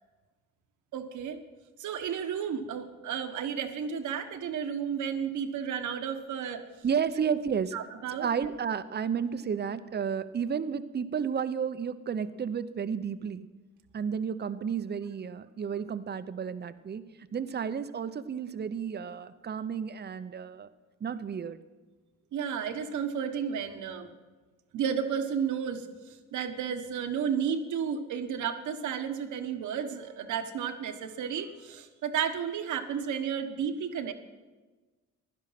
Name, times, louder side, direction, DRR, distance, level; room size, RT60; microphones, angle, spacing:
voice 1, 0.9-1.4 1.8-6.6 7.7-8.5 22.3-24.1 24.7-34.1, right 7 dB, 75° right, 8 dB, 1.4 m, -32 dB
voice 2, 6.8-7.7 8.2-13.5 13.9-17.0 17.3-20.7 21.0-21.6, right 7 dB, 35° right, 12 dB, 0.8 m, -32 dB
16.0 x 11.5 x 5.8 m, 1.3 s
cardioid pair, 90°, 30 cm